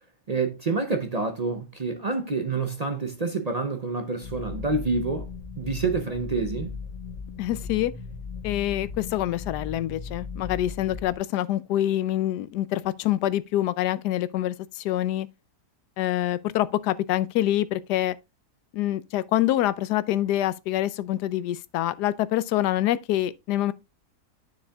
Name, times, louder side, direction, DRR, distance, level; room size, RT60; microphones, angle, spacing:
voice 1, 0.3-5.3 5.6-6.8, right 4 dB, 50° right, 0.4 m, -28 dB
sound 1, 4.2-11.2, left 5 dB, 55° left, 1.0 m, -37 dB
voice 2, 7.4-7.9 8.4-15.3 16.0-18.1 18.7-23.7, left 13 dB, 90° left, 1.2 m, -26 dB
9.7 x 6.2 x 2.3 m
omnidirectional pair, 1.7 m